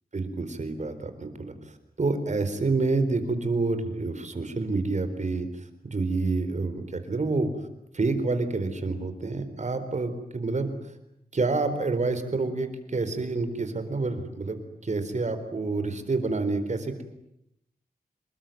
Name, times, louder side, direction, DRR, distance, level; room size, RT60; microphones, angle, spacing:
voice 1, 0.1-1.5 2.0-5.5 5.8-7.5 7.9-10.7 11.3-17.0, right 3 dB, 50° right, 9 dB, 4.2 m, -28 dB
27.5 x 22.0 x 9.2 m, 0.78 s
wide cardioid pair, 130°, 16 cm